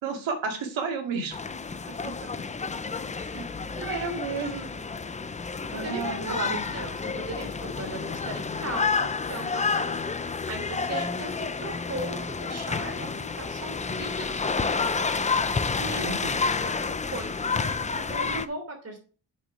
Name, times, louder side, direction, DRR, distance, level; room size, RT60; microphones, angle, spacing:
voice 1, 0.0-1.4 3.3-3.5 3.8-4.7 5.7-6.6 15.8-16.3, right 4 dB, 85° right, 3 dB, 2.4 m, -32 dB
sound 1, 1.3-18.5, left 4 dB, 15° left, 0.4 m, -30 dB
voice 2, 3.1-4.5 5.7-19.0, right 2 dB, 35° right, 3 dB, 3.1 m, -39 dB
8.1 x 6.5 x 5.0 m, 0.39 s
wide cardioid pair, 145°, 45 cm